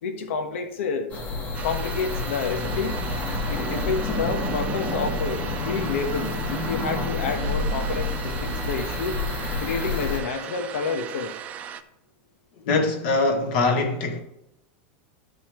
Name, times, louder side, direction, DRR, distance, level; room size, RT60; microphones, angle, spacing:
voice 1, 0.0-1.1 1.6-3.0 3.5-9.2 9.6-11.3, left 5 dB, 90° left, 1.4 m, -29 dB
sound 1, 1.1-10.2, left 2 dB, 20° left, 1.3 m, -29 dB
sound 2, 1.5-11.8, right 9 dB, 20° right, 0.4 m, -38 dB
voice 2, 12.6-14.2, left 3 dB, 50° left, 1.5 m, -22 dB
13.5 x 5.6 x 3.2 m
supercardioid pair, 175°, 7 cm